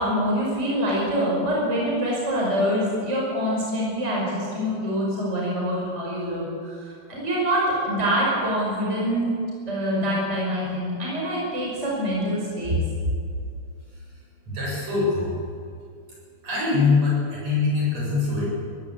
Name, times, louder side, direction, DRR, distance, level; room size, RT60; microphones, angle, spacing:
voice 1, 0.0-9.3 9.7-12.8, equal, 15° right, -4 dB, 5.7 m, -25 dB
voice 2, 13.8-15.4 16.4-18.5, left 4 dB, 45° right, -5 dB, 9.0 m, -24 dB
21.5 x 17.0 x 8.3 m, 2.4 s
omnidirectional pair, 4.2 m